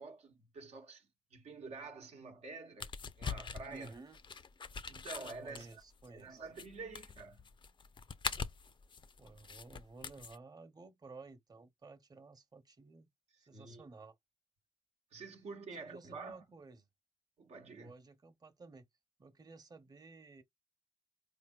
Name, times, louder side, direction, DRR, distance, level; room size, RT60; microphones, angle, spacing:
voice 1, 0.0-2.9 3.2-3.9 4.9-5.7 6.1-7.4 13.5-13.8 15.1-16.4 17.4-17.9, right 3 dB, 90° right, 0.8 m, -48 dB
sound 1, 2.8-10.4, left 5 dB, 50° left, 0.4 m, -43 dB
voice 2, 3.7-4.2 5.4-6.4 9.2-13.1 13.5-14.2 15.8-16.9 17.7-18.9 19.2-20.4, right 3 dB, 35° right, 0.7 m, -54 dB
4.3 x 3.3 x 2.3 m
cardioid pair, 65°, 11 cm